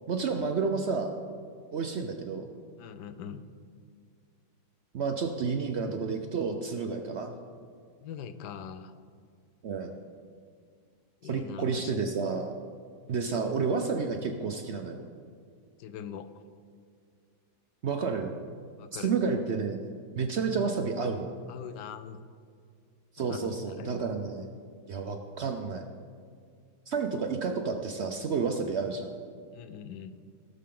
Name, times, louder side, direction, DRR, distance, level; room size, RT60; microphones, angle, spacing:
voice 1, 0.1-1.1 1.7-2.5 4.9-7.3 9.6-10.0 11.2-12.5 13.1-15.0 17.8-18.4 18.9-19.9 20.2-21.3 23.1-24.5 24.9-25.8 26.9-29.1, right 5 dB, 60° right, 5 dB, 0.7 m, -30 dB
voice 2, 2.8-3.5 8.0-8.9 11.2-11.9 15.8-16.4 18.8-19.1 21.5-22.2 23.2-23.9 29.5-30.1, left 8 dB, 90° left, 11 dB, 1.2 m, -42 dB
17.5 x 6.7 x 3.8 m, 2.1 s
omnidirectional pair, 1.7 m